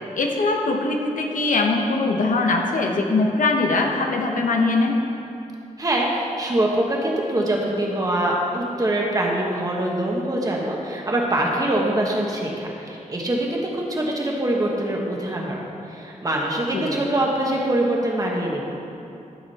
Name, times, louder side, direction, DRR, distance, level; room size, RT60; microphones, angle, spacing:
voice 1, 0.2-4.9 16.7-17.0, left 3 dB, 75° left, 1 dB, 1.1 m, -21 dB
voice 2, 5.8-15.6 15.9-18.7, right 1 dB, 25° right, -2 dB, 1.3 m, -24 dB
13.0 x 7.4 x 4.2 m, 2.8 s
wide cardioid pair, 170°, 14 cm